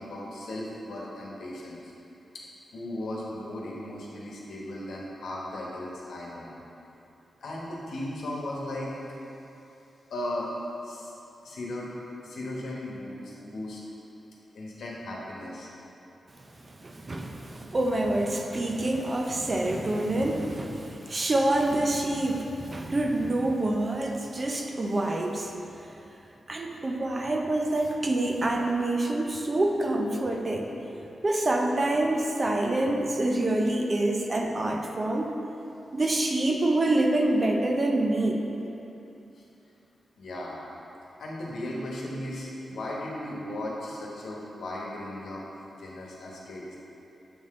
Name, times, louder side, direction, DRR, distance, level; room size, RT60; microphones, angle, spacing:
voice 1, 0.0-1.9 2.7-6.6 7.4-9.0 10.1-10.5 10.8-11.1 11.4-11.9 12.2-13.8 14.5-15.7 39.3-39.5 40.2-40.6 41.2-45.4 45.7-46.8, left 1 dB, 85° left, -4 dB, 1.1 m, -36 dB
voice 2, 16.7-25.5 26.5-30.7 31.2-35.3 35.9-38.4, right 1 dB, 30° right, 1 dB, 0.5 m, -26 dB
7.7 x 3.8 x 3.7 m, 2.9 s
wide cardioid pair, 120°, 0 cm